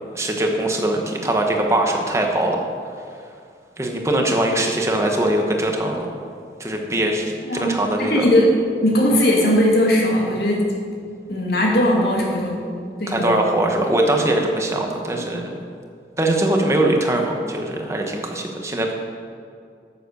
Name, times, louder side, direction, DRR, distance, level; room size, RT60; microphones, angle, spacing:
voice 1, 0.1-2.7 3.8-6.1 6.6-8.2 13.1-15.5 16.2-18.9, right 1 dB, 15° right, 2 dB, 1.2 m, -21 dB
voice 2, 7.4-8.6 8.8-10.7 11.3-12.6 13.0-13.4, equal, 60° left, -2 dB, 2.4 m, -19 dB
9.5 x 7.9 x 6.7 m, 2.3 s
head